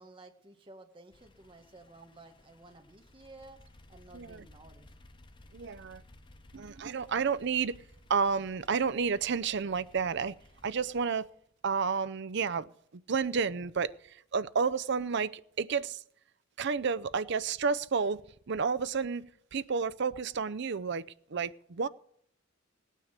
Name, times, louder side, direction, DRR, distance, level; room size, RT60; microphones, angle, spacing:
voice 1, 0.0-4.9, right 2 dB, 25° right, 1.4 m, -54 dB
sound 1, 1.1-11.1, left 1 dB, 25° left, 0.7 m, -58 dB
voice 2, 5.5-6.0 6.5-7.8 8.1-10.3 10.6-11.3 11.6-12.7 13.1-16.0 16.6-21.0 21.3-21.9, right 5 dB, 55° right, 0.6 m, -31 dB
17.5 x 9.2 x 6.5 m
head